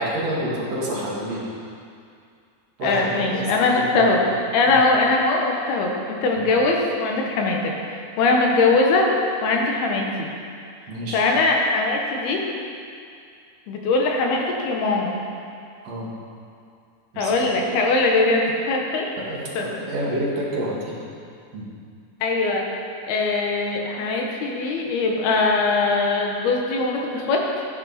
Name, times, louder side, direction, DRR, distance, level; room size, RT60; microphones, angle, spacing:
voice 1, 0.0-1.5 2.8-3.5 3.8-4.0 4.7-4.8 6.4-6.5 10.9-11.2 15.8-16.1 17.1-17.4 19.2-21.0 21.5-21.7, right 1 dB, 45° right, -5 dB, 2.8 m, -28 dB
voice 2, 2.8-4.2 4.5-7.7 8.2-9.1 9.4-10.3 11.1-12.4 13.7-15.2 17.2-19.1 19.6-19.7 22.2-22.7 23.1-27.7, left 3 dB, 75° left, 0 dB, 3.1 m, -21 dB
14.0 x 10.5 x 4.3 m, 2.4 s
omnidirectional pair, 4.7 m